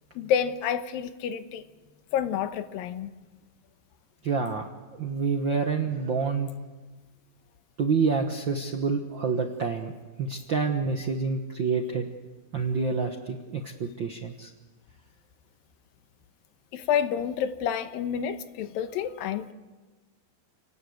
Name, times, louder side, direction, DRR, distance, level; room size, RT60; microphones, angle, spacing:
voice 1, 0.2-1.6 2.1-3.1 16.7-19.5, left 8 dB, 80° left, 2.8 m, -29 dB
voice 2, 4.2-4.7 5.0-6.5 7.8-9.9 10.2-12.1 12.5-14.5, right 5 dB, 65° right, 1.2 m, -27 dB
30.0 x 19.0 x 8.0 m
omnidirectional pair, 4.1 m